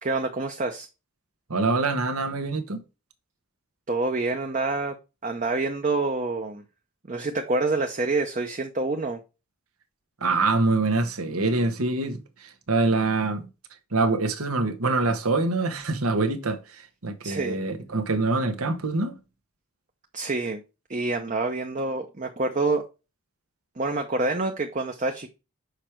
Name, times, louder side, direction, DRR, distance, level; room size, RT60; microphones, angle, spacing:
voice 1, 0.0-0.9 3.9-5.0 5.2-6.6 7.1-9.2 17.2-17.6 20.1-20.6 20.9-22.9 23.8-25.3, right 3 dB, 35° right, 0.7 m, -27 dB
voice 2, 1.5-2.8 10.2-13.5 13.9-19.2, right 3 dB, 90° right, 1.4 m, -25 dB
6.5 x 5.1 x 4.5 m
head